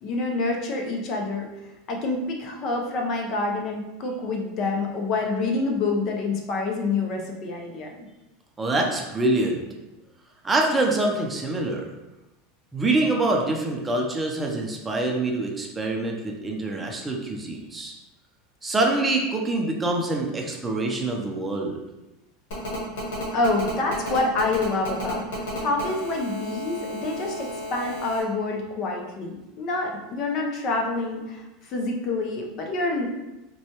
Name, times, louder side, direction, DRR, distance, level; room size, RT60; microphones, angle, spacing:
voice 1, 0.0-1.5 1.9-8.1 23.3-25.3 25.5-33.1, left 3 dB, 50° left, 1 dB, 0.7 m, -27 dB
voice 2, 8.6-9.6 10.4-11.9 12.7-17.9 18.6-21.8, right 2 dB, 15° right, 0 dB, 0.6 m, -25 dB
Telephone, 22.5-28.2, left 1 dB, 75° left, 1.2 m, -33 dB
4.1 x 2.3 x 2.9 m, 1.0 s
supercardioid pair, 110°, 0 cm